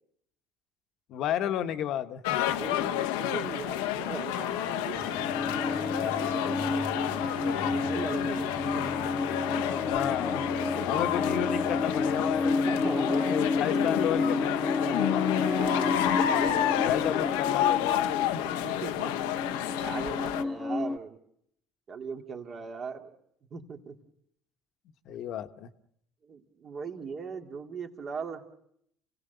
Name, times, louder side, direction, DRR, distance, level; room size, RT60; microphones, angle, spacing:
voice 1, 1.1-2.5 9.8-10.5 10.9-15.5 16.8-18.5 25.0-25.7, left 10 dB, 65° left, 10 dB, 1.1 m, -33 dB
sound 1, 2.2-20.4, left 12 dB, 90° left, 0.8 m, -30 dB
voice 2, 2.4-7.1 7.7-9.3 10.7-11.0 12.5-13.4 15.4-17.1 18.4-19.2 19.8-21.2 21.9-23.1 23.5-24.0 26.2-28.4, right 5 dB, 45° right, 4 dB, 2.4 m, -39 dB
sound 2, 2.6-4.5 4.9-21.0, left 3 dB, 15° left, 1.0 m, -31 dB
Guitar, 4.9-12.6, right 2 dB, 25° right, 3.3 m, -44 dB
28.5 x 17.0 x 6.8 m, 0.73 s
supercardioid pair, 85°, 0 cm